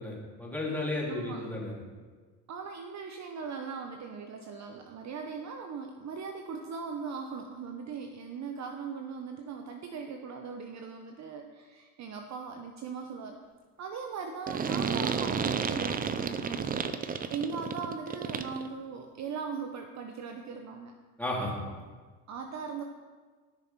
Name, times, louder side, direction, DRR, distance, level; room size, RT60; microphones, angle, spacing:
voice 1, 0.0-1.7 21.2-21.5, left 2 dB, 5° left, -4 dB, 3.2 m, -33 dB
voice 2, 1.1-1.4 2.5-13.4 13.8-16.9 17.3-20.9 22.3-22.8, right 5 dB, 40° right, 4 dB, 0.9 m, -39 dB
sound 1, 14.5-18.7, right 6 dB, 20° right, 0.5 m, -31 dB
13.5 x 6.7 x 4.3 m, 1.5 s
hypercardioid pair, 90°, 45 cm